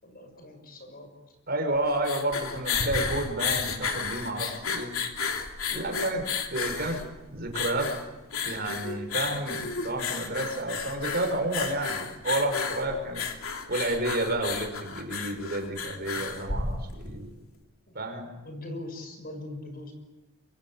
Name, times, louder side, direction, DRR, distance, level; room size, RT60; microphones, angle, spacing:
voice 1, 0.0-1.1 5.7-6.1 17.9-18.0 18.4-19.9, left 1 dB, 45° left, 6 dB, 6.2 m, -41 dB
voice 2, 1.5-4.9 5.7-7.0 7.3-7.9 8.4-13.2 13.7-17.3 17.9-18.3, right 1 dB, 45° right, 5 dB, 5.6 m, -30 dB
sound 1, 1.8-17.2, left 5 dB, 80° left, 3.1 m, -33 dB
26.5 x 25.0 x 8.9 m, 1.0 s
head